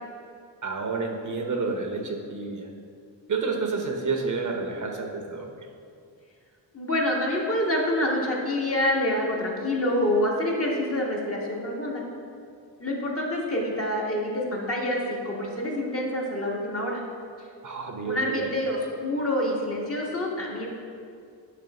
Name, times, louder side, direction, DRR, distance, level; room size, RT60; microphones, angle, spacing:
voice 1, 0.6-2.7 3.3-5.7 17.6-18.5, right 4 dB, 45° right, 2 dB, 0.9 m, -30 dB
voice 2, 6.7-12.0 12.8-17.0 18.0-20.7, left 1 dB, 30° left, -3 dB, 1.6 m, -27 dB
9.2 x 3.3 x 6.0 m, 2.3 s
cardioid pair, 85°, 42 cm